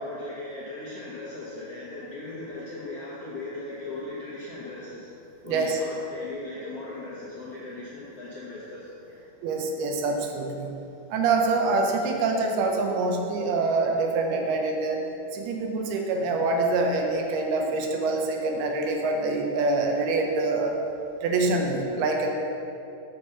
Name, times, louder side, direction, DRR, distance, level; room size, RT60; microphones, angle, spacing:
voice 1, 0.0-5.1 5.4-9.2, left 2 dB, 70° left, -7 dB, 1.5 m, -38 dB
voice 2, 5.5-5.8 9.4-10.8 11.1-15.0 15.3-20.8 21.2-22.3, right 3 dB, 85° right, 2 dB, 2.8 m, -25 dB
8.4 x 5.6 x 6.8 m, 2.7 s
omnidirectional pair, 4.5 m